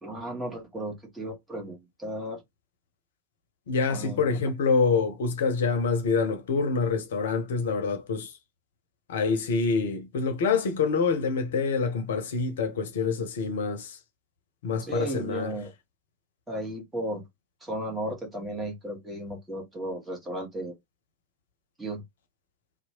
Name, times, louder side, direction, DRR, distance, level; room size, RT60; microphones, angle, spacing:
voice 1, 0.0-2.4 3.9-4.4 14.8-15.7 16.5-17.2 17.6-20.7 21.8-22.0, right 1 dB, 10° right, 1.3 m, -34 dB
voice 2, 3.7-8.3 9.1-14.0 14.6-15.5, left 4 dB, 60° left, 0.6 m, -26 dB
2.8 x 2.0 x 2.9 m
figure-of-eight pair, 90°, 0 cm